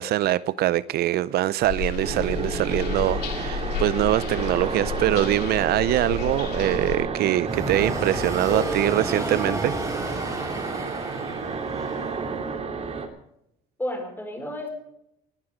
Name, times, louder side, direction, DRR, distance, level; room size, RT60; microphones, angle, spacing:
voice 1, 0.0-9.7, right 14 dB, 70° right, 0.6 m, -23 dB
sound 1, 1.6-7.0, left 6 dB, 75° left, 2.6 m, -31 dB
sound 2, 2.0-13.1, right 5 dB, 35° right, 2.4 m, -31 dB
sound 3, 7.4-12.6, right 1 dB, 20° right, 5.1 m, -32 dB
voice 2, 8.5-9.4 13.8-14.7, left 1 dB, 10° left, 4.9 m, -32 dB
19.0 x 12.0 x 5.0 m
cardioid pair, 110°, 17 cm